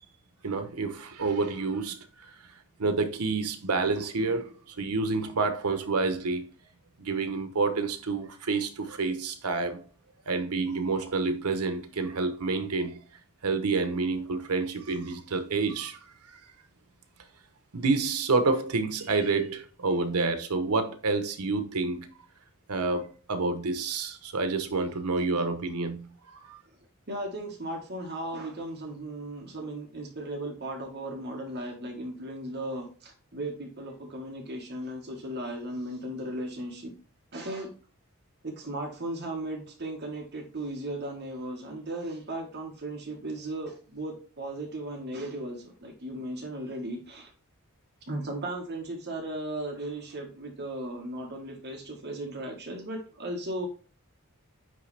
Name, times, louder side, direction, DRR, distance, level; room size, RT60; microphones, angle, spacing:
voice 1, 0.4-2.3 2.8-6.5 7.0-9.8 10.3-13.0 13.4-16.0 16.3-16.4 17.7-22.1 22.7-26.6, right 3 dB, 85° right, 0.9 m, -28 dB
voice 2, 27.1-36.9 37.3-37.7 38.4-47.3 48.1-53.7, right 1 dB, 50° right, 1.5 m, -36 dB
9.2 x 3.2 x 3.3 m
head